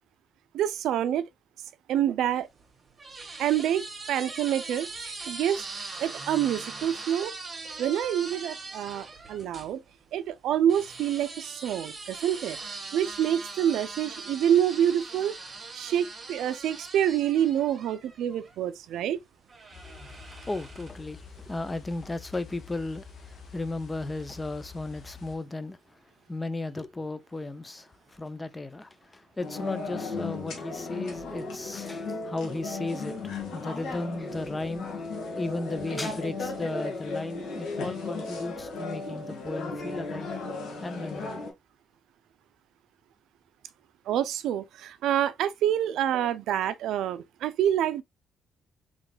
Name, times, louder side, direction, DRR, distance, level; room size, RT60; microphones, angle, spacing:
voice 1, 0.5-1.3 1.9-2.5 3.4-5.6 6.0-7.3 7.8-9.8 10.1-12.6 12.9-15.3 15.7-19.2 44.1-48.0, right 10 dB, 80° right, 0.4 m, -27 dB
sound 1, 2.3-9.7 10.7-18.6 19.5-21.1, right 3 dB, 30° right, 1.3 m, -41 dB
sound 2, 19.7-25.4, left 5 dB, 55° left, 1.1 m, -47 dB
voice 2, 19.7-40.3 40.8-41.5, left 2 dB, 20° left, 0.5 m, -35 dB
sound 3, 29.4-41.5, left 3 dB, 75° left, 1.6 m, -35 dB
3.8 x 3.6 x 2.2 m
cardioid pair, 90°, 0 cm